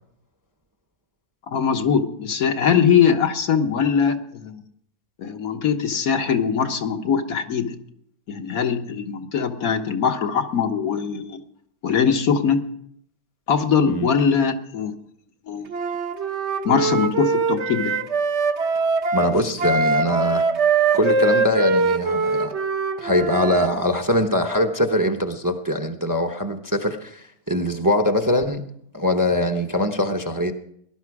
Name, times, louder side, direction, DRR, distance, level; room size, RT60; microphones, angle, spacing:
voice 1, 1.5-4.6 5.2-7.8 8.3-11.4 11.8-12.6 13.5-14.9 15.5-15.7 16.6-17.9, left 7 dB, 75° left, 5 dB, 1.7 m, -21 dB
Wind instrument woodwind instrument, 15.7-23.7, right 4 dB, 55° right, 1.2 m, -22 dB
voice 2, 19.1-20.5 20.9-22.5 23.0-28.6 28.9-30.5, left 1 dB, 15° right, 6 dB, 0.8 m, -22 dB
18.5 x 12.0 x 4.8 m, 0.70 s
omnidirectional pair, 1.5 m